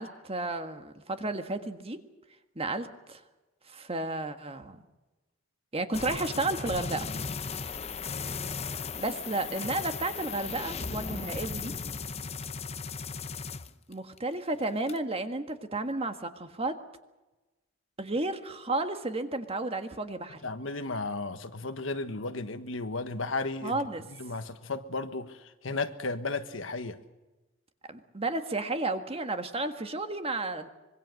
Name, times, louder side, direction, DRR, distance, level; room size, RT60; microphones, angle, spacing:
voice 1, 0.0-2.0 2.5-3.2 3.7-4.8 5.7-7.1 8.9-11.7 13.9-16.7 18.0-20.4 23.6-24.0 27.9-30.7, right 2 dB, 30° right, 1.6 m, -32 dB
sound 1, 5.9-14.2 14.5-15.0, left 5 dB, 35° left, 0.8 m, -36 dB
voice 2, 20.4-23.8 24.1-27.0, left 3 dB, 80° left, 1.4 m, -34 dB
25.5 x 22.0 x 6.5 m
head